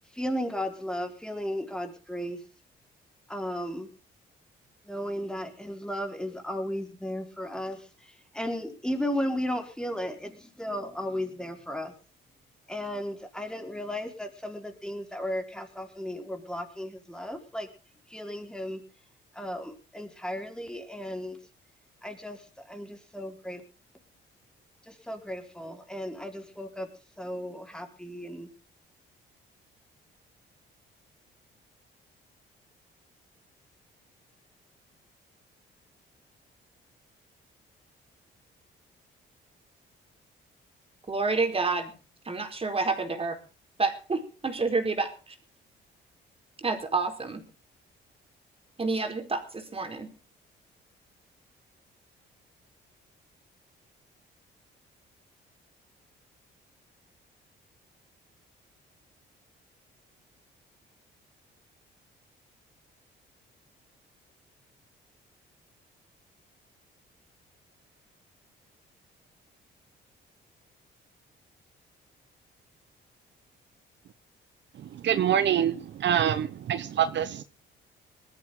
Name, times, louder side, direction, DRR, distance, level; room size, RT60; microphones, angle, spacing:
voice 1, 0.1-2.4 3.3-3.9 4.8-11.9 12.7-17.7 18.1-18.8 19.3-21.4 22.0-23.6 24.8-26.9 27.2-28.5, equal, 5° left, 4 dB, 4.7 m, -35 dB
voice 2, 41.1-41.9 42.2-43.4 43.8-45.3 46.6-47.4 48.8-50.1, right 3 dB, 30° right, 6 dB, 4.5 m, -29 dB
voice 3, 74.8-77.4, right 9 dB, 65° right, 13 dB, 1.1 m, -26 dB
20.0 x 14.0 x 3.9 m, 0.36 s
cardioid pair, 90°, 20 cm